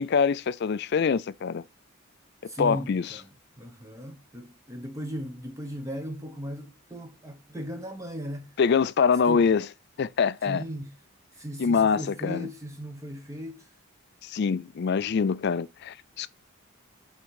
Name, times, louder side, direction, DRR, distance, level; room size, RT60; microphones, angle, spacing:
voice 1, 0.0-1.6 2.6-3.2 8.6-9.7 10.0-10.6 11.6-12.5 14.2-16.3, left 6 dB, 50° left, 0.4 m, -24 dB
voice 2, 2.5-3.3 3.6-8.5 9.3-9.5 10.5-10.9 11.4-13.7, equal, 15° right, 0.9 m, -37 dB
8.4 x 3.7 x 4.7 m
head